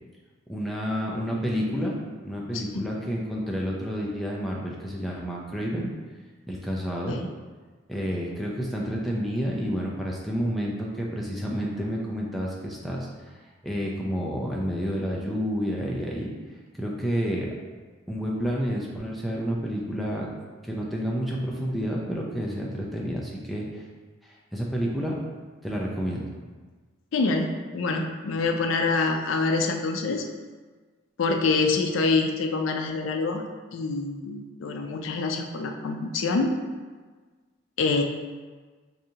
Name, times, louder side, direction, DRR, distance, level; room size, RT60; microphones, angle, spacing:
voice 1, 0.5-2.0 2.2-5.9 6.5-7.2 7.9-13.4 13.6-16.3 16.7-17.5 18.1-20.3 20.6-23.8 24.2-25.1 25.6-26.3, equal, ahead, -4 dB, 0.4 m, -29 dB
voice 2, 27.1-30.3 31.2-33.5 33.7-36.5 37.8-38.0, left 3 dB, 85° left, 4 dB, 0.4 m, -26 dB
4.8 x 2.7 x 2.8 m, 1.4 s
head